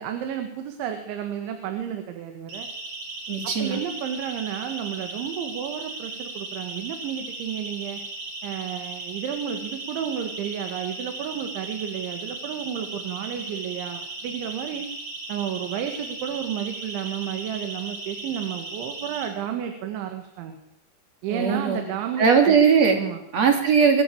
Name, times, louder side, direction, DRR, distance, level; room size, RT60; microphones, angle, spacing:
voice 1, 0.0-2.7 3.6-8.0 8.4-14.9 15.3-20.6 21.2-22.6 22.9-23.2, right 9 dB, 80° right, 6 dB, 4.2 m, -32 dB
Siren, 2.5-19.3, right 2 dB, 60° right, 7.2 m, -36 dB
voice 2, 3.3-3.8 21.3-21.8 22.2-23.0 23.3-24.0, right 6 dB, 40° right, 5 dB, 3.7 m, -19 dB
24.5 x 15.5 x 8.7 m, 0.82 s
omnidirectional pair, 5.4 m